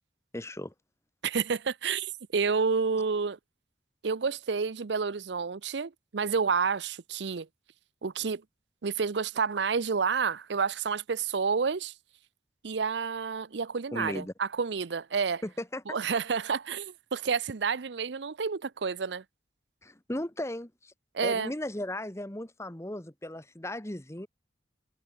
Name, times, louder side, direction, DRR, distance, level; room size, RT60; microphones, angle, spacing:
voice 1, 0.3-0.7 13.9-14.3 15.4-16.0 19.8-20.9 21.2-24.3, left 1 dB, 15° left, 1.3 m, -36 dB
voice 2, 1.2-3.4 4.0-7.5 8.0-8.4 8.8-11.9 12.6-15.4 15.9-19.2 21.1-21.5, right 5 dB, 70° right, 0.6 m, -29 dB
head